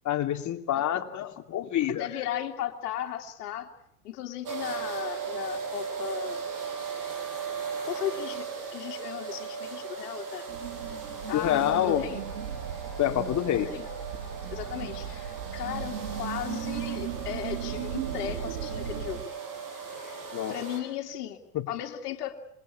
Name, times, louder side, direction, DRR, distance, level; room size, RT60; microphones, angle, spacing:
voice 1, 0.0-2.1 11.3-12.0 13.0-13.7 20.3-20.5 21.5-21.7, left 11 dB, 35° left, 5 dB, 2.9 m, -27 dB
voice 2, 2.0-3.7 4.0-6.5 7.8-10.5 11.3-12.2 13.5-13.9 14.5-19.2 20.5-21.4 21.7-22.4, left 11 dB, 75° left, 3 dB, 2.7 m, -36 dB
sound 1, 4.5-20.8, right 6 dB, 40° right, 7.9 m, -37 dB
sound 2, 10.5-19.2, right 9 dB, 75° right, 3.2 m, -37 dB
27.0 x 21.5 x 8.7 m, 0.74 s
hypercardioid pair, 90°, 47 cm